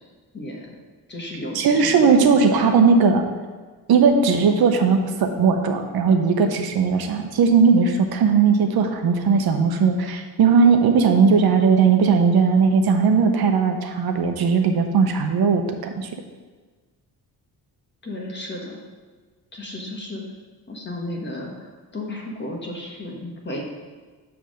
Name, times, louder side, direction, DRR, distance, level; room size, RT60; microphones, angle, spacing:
voice 1, 0.3-0.8 1.1-2.9 18.0-18.8 19.5-20.2 20.7-23.6, left 1 dB, 30° left, -1 dB, 1.2 m, -33 dB
voice 2, 1.5-3.2 3.9-16.1, right 5 dB, 75° right, 5 dB, 0.8 m, -18 dB
7.2 x 3.5 x 6.3 m, 1.4 s
wide cardioid pair, 155°, 37 cm